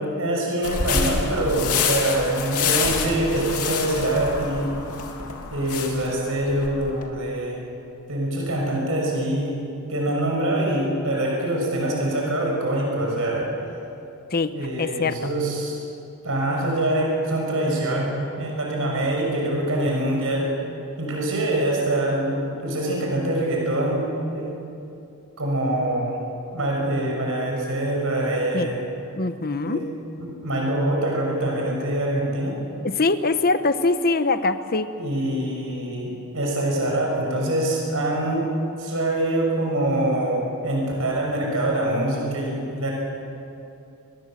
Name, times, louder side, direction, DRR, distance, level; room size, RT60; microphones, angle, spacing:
voice 1, 0.0-4.7 5.5-7.6 8.1-9.6 9.9-13.5 14.5-15.8 16.2-18.1 18.4-20.5 21.0-24.5 25.4-26.2 26.5-28.8 29.6-29.8 30.2-32.6 35.0-38.5 38.8-42.9, right 1 dB, 65° right, -1 dB, 6.1 m, -24 dB
sound 1, 0.6-7.0, left 5 dB, 80° left, 3.0 m, -27 dB
voice 2, 14.3-15.2 28.5-28.7 29.1-29.9 32.8-34.9, left 3 dB, 45° left, 10 dB, 1.0 m, -23 dB
28.5 x 22.0 x 7.6 m, 2.7 s
head